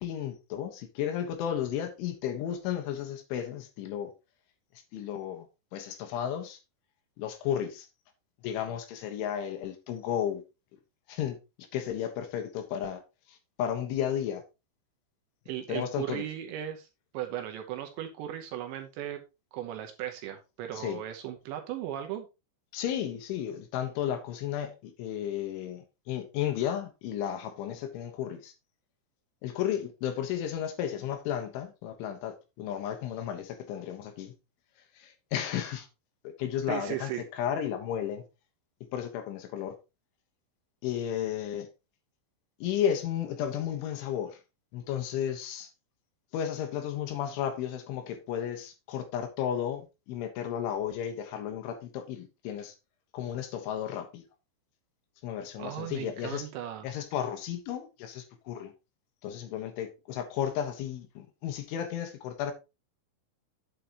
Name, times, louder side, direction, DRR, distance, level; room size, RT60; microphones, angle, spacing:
voice 1, 0.0-4.1 4.9-5.5 5.7-6.6 7.2-7.9 8.4-10.4 11.1-13.0 13.3-14.4 15.7-16.3 20.7-21.0 22.7-28.5 29.4-34.3 35.0-35.9 36.4-38.2 38.9-39.8 40.8-41.7 42.6-44.4 44.7-45.7 46.3-52.8 53.1-54.2 55.2-56.5 56.8-58.7 59.2-62.5, left 9 dB, 75° left, 3.5 m, -33 dB
voice 2, 15.5-16.9 17.1-19.2 19.5-22.3 36.7-37.2 55.6-56.9, right 11 dB, 75° right, 2.9 m, -37 dB
9.2 x 8.5 x 3.0 m
omnidirectional pair, 5.9 m